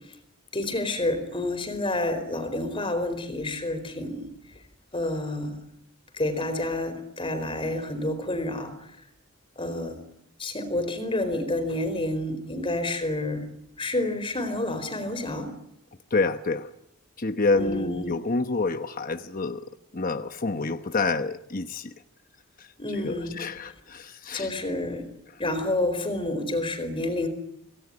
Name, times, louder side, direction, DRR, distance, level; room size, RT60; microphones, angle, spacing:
voice 1, 0.5-4.3 4.9-5.6 6.1-8.7 9.6-10.0 10.4-13.5 13.8-15.5 17.5-18.1 22.8-23.4 24.3-25.1 25.4-27.3, left 1 dB, 25° left, 9 dB, 4.4 m, -29 dB
voice 2, 16.1-16.7 17.2-19.6 19.9-21.9 22.6-22.7 22.9-24.5, left 3 dB, 40° left, 8 dB, 1.0 m, -28 dB
27.5 x 18.0 x 9.7 m, 0.79 s
head